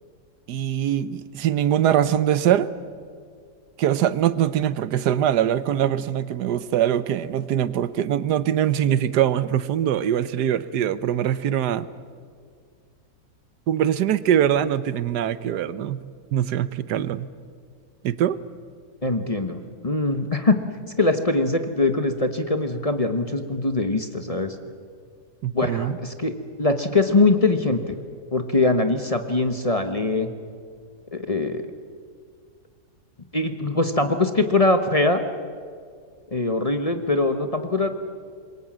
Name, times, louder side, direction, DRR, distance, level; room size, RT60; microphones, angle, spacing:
voice 1, 0.5-2.7 3.8-11.9 13.7-16.0 16.3-17.3 18.0-18.4 25.4-26.0, right 10 dB, 85° right, 15 dB, 1.4 m, -22 dB
voice 2, 19.0-20.6 21.0-24.6 25.5-26.3 26.6-28.0 28.3-30.3 31.1-31.6 33.3-35.2 36.3-37.9, left 2 dB, 25° left, 7 dB, 1.0 m, -22 dB
26.0 x 22.5 x 7.4 m, 2.1 s
omnidirectional pair, 1.7 m